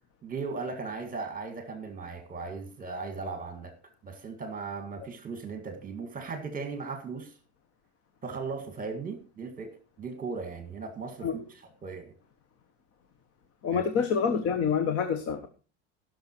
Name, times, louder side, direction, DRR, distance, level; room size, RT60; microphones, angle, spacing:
voice 1, 0.2-3.7 4.0-7.3 8.2-11.4 11.8-12.1 13.7-13.8, right 4 dB, 25° right, 2.0 m, -37 dB
voice 2, 13.6-15.5, left 6 dB, 45° left, 1.4 m, -27 dB
16.0 x 6.7 x 4.5 m
supercardioid pair, 135°, 34 cm